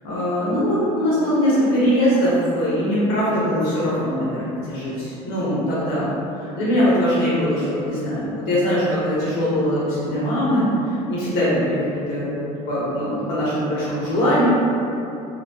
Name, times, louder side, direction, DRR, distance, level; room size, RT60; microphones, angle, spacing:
voice 1, 0.0-6.1 6.4-11.8 12.1-14.5, equal, 80° left, -9 dB, 1.3 m, -21 dB
4.0 x 2.6 x 3.1 m, 2.8 s
cardioid pair, 150°, 15 cm